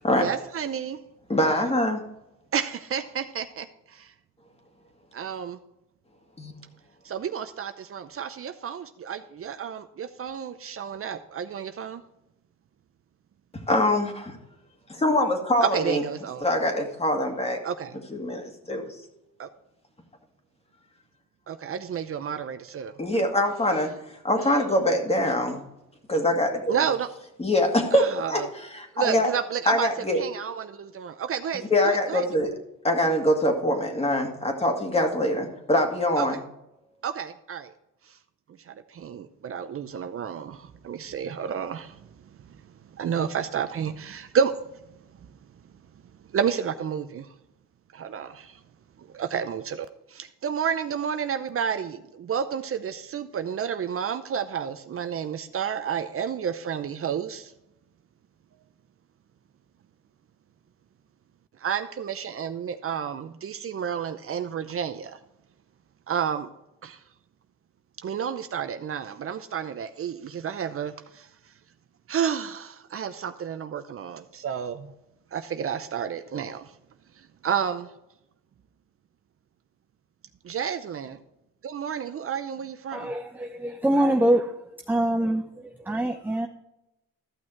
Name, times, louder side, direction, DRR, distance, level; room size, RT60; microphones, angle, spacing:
voice 1, 0.2-1.0 2.5-4.1 5.1-5.6 7.0-12.0 15.6-16.4 17.6-18.0 19.4-19.5 21.5-22.9 26.7-27.1 27.9-28.5 28.9-29.9 30.2-32.3 36.2-36.4 37.0-37.7 38.7-42.0 42.9-44.5 46.3-47.3 47.9-48.6 49.0-57.5 61.6-65.2 66.1-66.5 66.8-67.0 68.0-71.3 72.1-74.9 75.3-76.7 77.4-77.9 80.4-81.2 81.6-83.1, right 7 dB, 50° right, 9 dB, 0.7 m, -30 dB
voice 2, 1.3-2.0 6.4-6.5 13.5-14.4 14.9-16.0 16.4-17.6 18.1-18.9 23.0-23.9 24.2-25.6 26.1-26.8 27.4-29.3 29.7-30.2 31.7-32.5 32.8-36.4, left 1 dB, 20° left, 4 dB, 2.2 m, -24 dB
voice 3, 82.9-84.6 84.9-86.5, right 1 dB, 5° right, 4 dB, 0.7 m, -24 dB
14.0 x 6.2 x 4.5 m, 0.88 s
cardioid pair, 90°, 30 cm